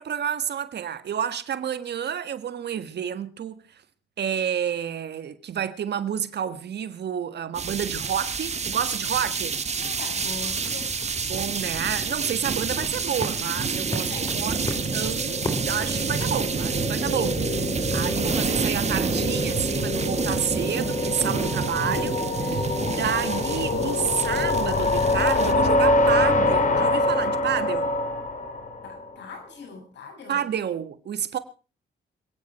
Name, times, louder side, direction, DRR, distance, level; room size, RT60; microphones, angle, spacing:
voice 1, 0.0-3.8 4.2-9.5 11.2-27.9 30.3-31.4, right 9 dB, 60° right, 1.6 m, -30 dB
sound 1, 7.5-25.5, right 5 dB, 35° right, 1.7 m, -29 dB
sound 2, 9.4-17.6, left 1 dB, 20° left, 3.8 m, -39 dB
voice 2, 9.6-10.9 14.0-14.9 28.8-30.4, left 4 dB, 60° left, 6.8 m, -41 dB
sound 3, 13.9-29.1, left 2 dB, 40° left, 3.5 m, -26 dB
27.0 x 9.6 x 4.3 m
cardioid pair, 90°, 20 cm